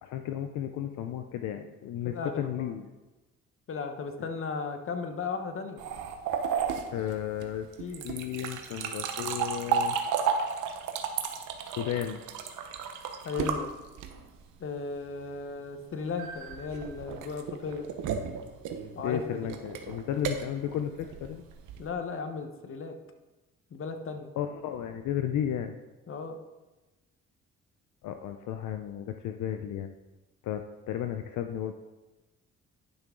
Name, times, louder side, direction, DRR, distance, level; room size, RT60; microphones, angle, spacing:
voice 1, 0.0-2.9 4.2-4.3 6.9-7.7 8.0-10.0 11.8-12.2 19.0-21.4 24.3-25.8 28.0-29.9 30.4-31.7, left 10 dB, 75° left, 7 dB, 0.6 m, -33 dB
voice 2, 2.0-2.7 3.7-5.8 7.8-8.1 13.2-13.7 14.6-17.9 18.9-19.5 21.8-23.0 23.7-24.3 26.1-26.4, left 4 dB, 45° left, 7 dB, 1.1 m, -36 dB
sound 1, 5.8-14.4 16.2-21.9, right 7 dB, 85° right, 0.9 m, -33 dB
10.5 x 6.0 x 3.8 m, 1.1 s
cardioid pair, 90°, 30 cm